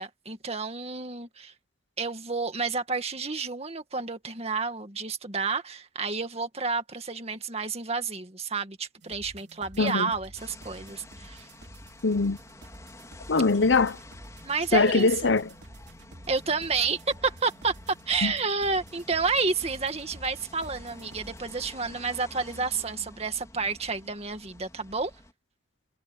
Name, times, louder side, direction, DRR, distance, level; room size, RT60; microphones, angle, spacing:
voice 1, 0.0-1.5 2.0-11.5 14.4-15.3 16.3-17.7 18.1-25.1, right 4 dB, 35° right, 2.1 m, -30 dB
sound 1, 9.0-21.4, right 1 dB, 65° right, 3.8 m, -49 dB
voice 2, 9.8-10.1 12.0-12.4 13.3-14.0 14.7-15.5 18.2-18.3, left 3 dB, 80° left, 0.8 m, -22 dB
sound 2, 10.4-25.3, left 1 dB, 20° left, 4.3 m, -49 dB
head